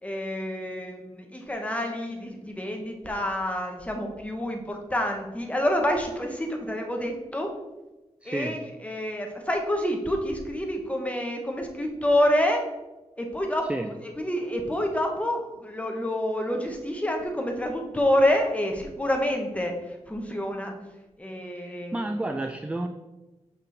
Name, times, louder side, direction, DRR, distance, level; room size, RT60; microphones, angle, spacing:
voice 1, 0.0-7.5 8.2-12.6 13.2-13.7 14.2-19.7 20.1-20.7 21.2-22.0, left 1 dB, 10° left, 2 dB, 1.0 m, -27 dB
voice 2, 8.2-8.7 13.7-13.9 21.6-22.9, right 2 dB, 10° right, 7 dB, 0.3 m, -31 dB
5.9 x 5.8 x 3.3 m, 1.1 s
wide cardioid pair, 100°, 12 cm